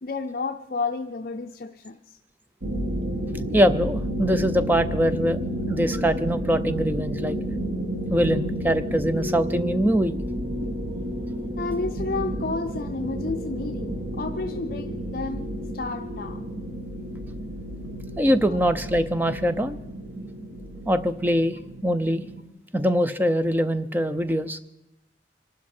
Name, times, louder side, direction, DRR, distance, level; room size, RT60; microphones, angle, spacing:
voice 1, 0.0-2.2 11.6-16.4 18.5-18.6, left 3 dB, 55° left, 5 dB, 0.5 m, -31 dB
sound 1, 2.6-22.4, equal, 80° right, 1.4 m, -31 dB
voice 2, 3.5-5.4 5.7-7.4 8.1-10.2 18.2-19.8 20.9-21.6 21.8-22.2 22.7-24.6, equal, 10° right, 11 dB, 0.5 m, -23 dB
25.5 x 12.0 x 4.3 m, 0.91 s
head